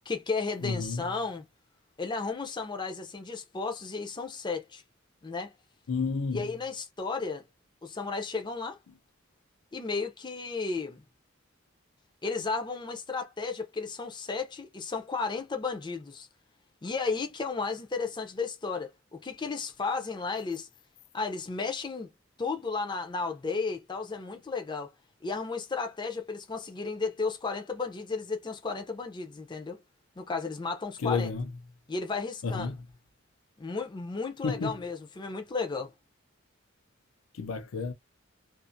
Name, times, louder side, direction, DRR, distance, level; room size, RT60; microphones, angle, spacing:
voice 1, 0.1-1.4 2.0-4.8 5.2-5.5 6.3-7.4 7.8-8.8 9.7-11.0 12.2-16.3 16.8-20.7 21.1-22.1 22.4-24.9 25.2-29.8 30.2-31.3 31.9-32.7 33.6-35.9, left 4 dB, 20° left, 0.5 m, -33 dB
voice 2, 0.6-1.0 5.9-6.4 31.0-31.4 32.4-32.8 34.4-34.8 37.4-37.9, left 4 dB, 85° left, 0.5 m, -30 dB
2.4 x 2.4 x 2.5 m
head